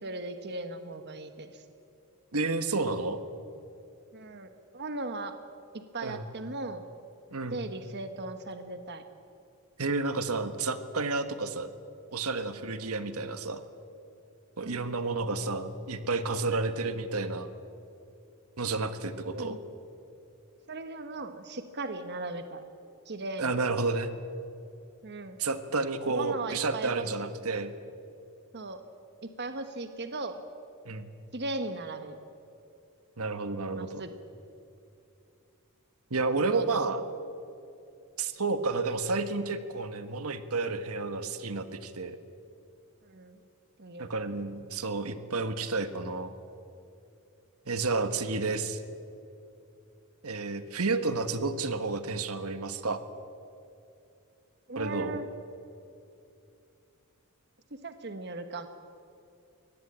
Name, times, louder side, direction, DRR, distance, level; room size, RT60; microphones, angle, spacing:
voice 1, 0.0-1.6 4.1-4.5 4.7-5.3 5.7-6.8 7.5-9.0 14.6-14.9 19.3-19.6 20.7-22.6 23.0-23.5 25.0-25.4 26.0-27.3 28.5-28.8 29.4-30.4 31.3-32.2 33.7-34.1 36.5-36.7 43.0-43.4 43.8-44.1 50.9-51.1 54.7-55.3 57.8-58.7, right 2 dB, 50° right, 9 dB, 1.2 m, -38 dB
voice 2, 2.3-3.2 6.0-6.2 7.3-7.6 9.8-11.7 12.1-13.6 14.6-17.5 18.6-19.6 23.4-24.1 25.4-27.7 30.8-31.1 33.2-34.0 36.1-37.0 38.2-42.2 44.0-46.3 47.7-48.8 50.2-53.0 54.7-55.2, right 3 dB, 80° right, 10 dB, 1.5 m, -31 dB
23.0 x 18.0 x 8.8 m, 2.7 s
head